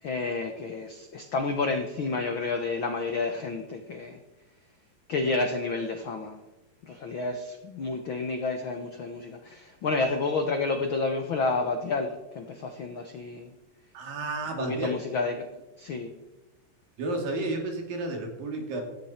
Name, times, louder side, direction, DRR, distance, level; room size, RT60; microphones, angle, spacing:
voice 1, 0.0-4.2 5.1-6.4 6.8-13.5 14.6-16.1, left 3 dB, 75° left, 6 dB, 1.1 m, -30 dB
voice 2, 13.9-14.9 17.0-18.8, right 2 dB, 85° right, 3 dB, 4.4 m, -31 dB
16.5 x 14.5 x 4.4 m, 1.0 s
omnidirectional pair, 3.9 m